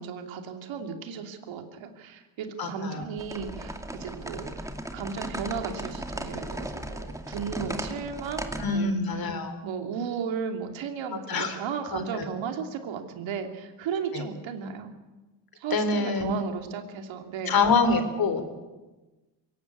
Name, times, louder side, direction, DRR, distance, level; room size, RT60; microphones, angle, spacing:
voice 1, 0.0-9.3 9.6-14.9 15.5-17.5, right 6 dB, 75° right, 5 dB, 3.0 m, -35 dB
voice 2, 2.6-3.1 8.6-9.6 11.3-11.6 11.9-12.2 14.1-14.3 15.7-16.3 17.5-18.4, left 4 dB, 50° left, 9 dB, 3.6 m, -25 dB
sound 1, 3.2-8.7, right 1 dB, 5° right, 2.5 m, -36 dB
22.5 x 18.0 x 8.6 m, 1.2 s
cardioid pair, 105°, 46 cm